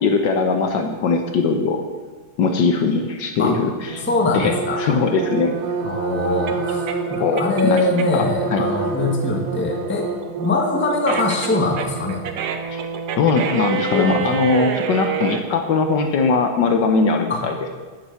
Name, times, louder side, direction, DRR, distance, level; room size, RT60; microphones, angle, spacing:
voice 1, 0.0-1.8 2.4-4.0 4.3-5.5 7.2-8.6 12.7-12.8 13.2-17.7, left 4 dB, 65° left, 5 dB, 1.4 m, -20 dB
sound 1, 3.9-13.5, right 5 dB, 80° right, 1.8 m, -28 dB
voice 2, 4.0-4.8 5.8-6.8 7.1-10.1 10.4-12.2 13.9-14.4 17.3-17.4, left 2 dB, 10° left, 1 dB, 0.9 m, -22 dB
sound 2, 4.8-8.3 8.7-15.4, right 8 dB, 65° right, 1.1 m, -28 dB
9.2 x 7.6 x 6.9 m, 1.4 s
omnidirectional pair, 2.3 m